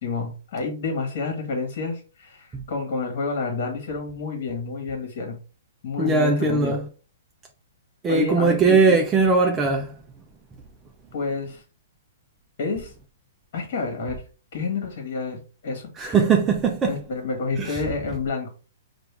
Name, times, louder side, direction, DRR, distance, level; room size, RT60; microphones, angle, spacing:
voice 1, 0.0-5.4 5.8-6.8 8.1-9.0 11.1-11.6 12.6-12.9 13.5-14.2 14.5-16.2 16.9-18.5, left 4 dB, 55° left, 1.4 m, -29 dB
voice 2, 6.0-6.8 8.0-9.9 16.0-16.9 17.6-17.8, right 4 dB, 20° right, 0.6 m, -20 dB
4.5 x 2.5 x 3.3 m
hypercardioid pair, 120°, 0 cm